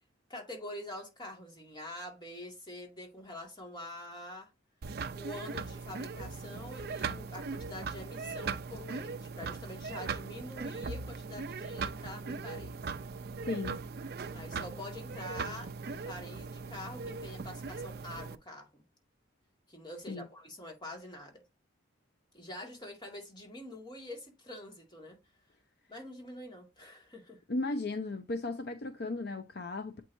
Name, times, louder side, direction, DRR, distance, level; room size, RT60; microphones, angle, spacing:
voice 1, 0.3-4.5 5.1-12.8 14.3-18.7 19.7-21.4 22.3-25.2 25.9-27.4, left 1 dB, 20° left, 2.0 m, -46 dB
sound 1, 4.8-18.4, right 4 dB, 50° right, 0.5 m, -39 dB
voice 2, 13.5-13.8 20.1-20.3 27.5-30.0, left 2 dB, 50° left, 0.6 m, -35 dB
8.1 x 4.6 x 2.7 m
head